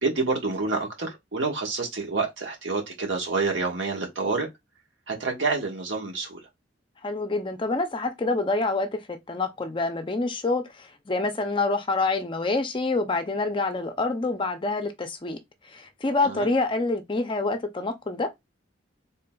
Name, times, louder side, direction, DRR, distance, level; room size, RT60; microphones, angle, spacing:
voice 1, 0.0-4.5 5.1-6.4 16.2-16.5, right 3 dB, 65° right, 1.4 m, -28 dB
voice 2, 7.0-15.4 15.6-18.3, left 3 dB, 25° left, 0.5 m, -27 dB
4.0 x 3.7 x 2.3 m
head